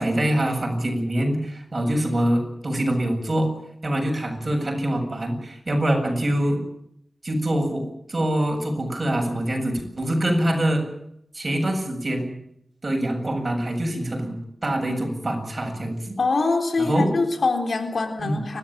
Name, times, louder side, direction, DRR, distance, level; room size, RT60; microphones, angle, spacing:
voice 1, 0.0-3.5 3.8-6.6 7.2-10.8 11.3-12.3 12.8-16.2 16.8-17.1 18.2-18.4, right 1 dB, 40° right, 3 dB, 7.9 m, -24 dB
voice 2, 16.2-18.6, left 3 dB, 70° left, 5 dB, 3.8 m, -23 dB
30.0 x 13.5 x 8.9 m, 0.75 s
wide cardioid pair, 60°, 0 cm